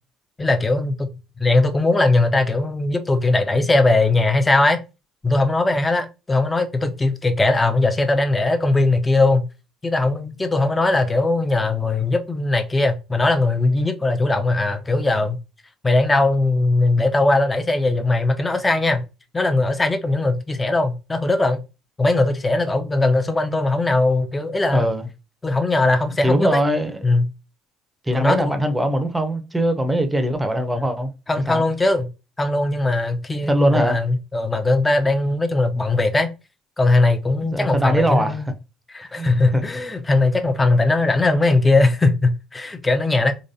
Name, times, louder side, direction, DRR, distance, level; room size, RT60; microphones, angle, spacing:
voice 1, 0.4-1.1 1.4-4.8 5.2-9.5 9.8-15.4 15.8-19.0 19.3-21.6 22.0-24.8 25.4-26.6 27.0-27.3 28.1-28.5 30.8-30.9 31.3-32.1 32.4-36.3 36.8-38.5 38.9-43.3, left 2 dB, 20° left, 0.7 m, -19 dB
voice 2, 24.7-25.1 26.2-27.0 28.1-31.1 31.5-31.6 33.4-34.0 37.4-38.4 39.1-39.6, right 1 dB, 15° right, 0.8 m, -21 dB
4.0 x 3.1 x 2.6 m
hypercardioid pair, 60°, 0 cm